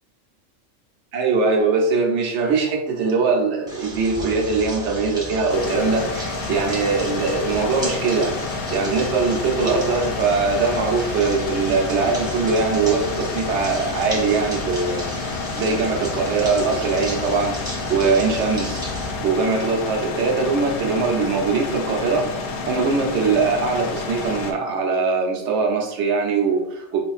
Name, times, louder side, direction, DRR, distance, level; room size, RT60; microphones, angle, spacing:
voice 1, 1.1-15.1 15.6-17.6 17.9-18.8 19.2-22.3 22.6-27.0, right 4 dB, 70° right, 1 dB, 1.0 m, -21 dB
sound 1, 3.7-19.1, left 1 dB, 5° right, 0.6 m, -33 dB
sound 2, 5.5-24.5, left 3 dB, 65° left, 0.8 m, -30 dB
4.4 x 2.5 x 2.3 m, 0.81 s
omnidirectional pair, 1.3 m